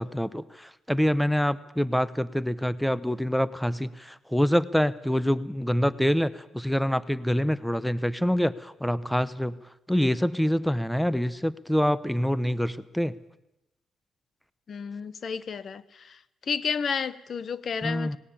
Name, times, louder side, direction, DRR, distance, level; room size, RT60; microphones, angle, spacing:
voice 1, 0.0-9.6 9.9-13.1 17.8-18.2, equal, ahead, 17 dB, 0.9 m, -26 dB
voice 2, 14.7-16.2 16.5-18.2, left 6 dB, 50° left, 17 dB, 1.1 m, -31 dB
18.5 x 18.0 x 8.6 m, 0.90 s
cardioid pair, 90°, 0 cm